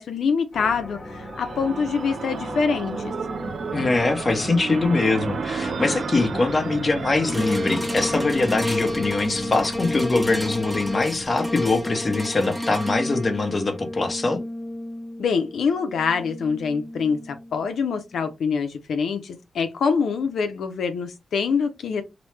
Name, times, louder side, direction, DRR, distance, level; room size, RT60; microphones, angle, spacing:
voice 1, 0.0-3.1 15.2-22.0, left 5 dB, 85° left, 0.4 m, -25 dB
sound 1, 0.5-12.3, left 1 dB, 50° left, 1.0 m, -38 dB
sound 2, 0.9-9.7, right 5 dB, 65° right, 0.4 m, -33 dB
voice 2, 3.7-14.4, left 3 dB, 35° left, 0.8 m, -23 dB
sound 3, 7.3-17.7 18.2-18.3, left 1 dB, 5° right, 0.6 m, -31 dB
2.9 x 2.0 x 3.2 m
wide cardioid pair, 100°, 0 cm